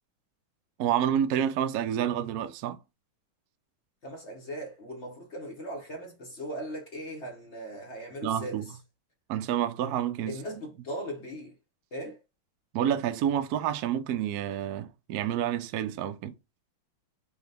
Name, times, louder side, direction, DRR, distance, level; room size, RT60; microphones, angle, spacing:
voice 1, 0.8-2.8 8.2-8.7 9.3-10.4 12.7-16.3, right 10 dB, 80° right, 0.8 m, -29 dB
voice 2, 4.0-8.8 10.3-11.6 11.9-12.2, equal, 45° left, 1.0 m, -39 dB
4.9 x 2.4 x 3.3 m
omnidirectional pair, 2.2 m